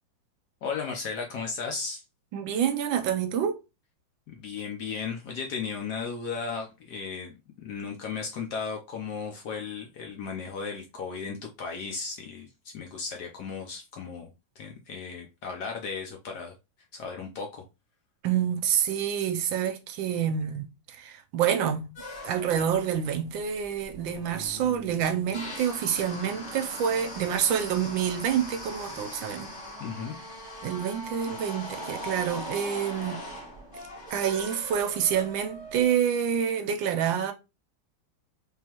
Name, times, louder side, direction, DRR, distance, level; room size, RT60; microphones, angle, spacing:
voice 1, 0.6-2.0 4.3-12.5 12.7-14.3 14.6-16.5 16.9-17.6 29.8-30.2, left 5 dB, 70° left, 1.0 m, -35 dB
voice 2, 2.3-3.6 18.2-21.9 22.2-29.5 30.6-33.2 34.1-37.3, right 8 dB, 75° right, 1.3 m, -27 dB
sound 1, 22.0-36.0, left 1 dB, 35° left, 1.9 m, -41 dB
3.7 x 3.3 x 2.9 m
omnidirectional pair, 2.3 m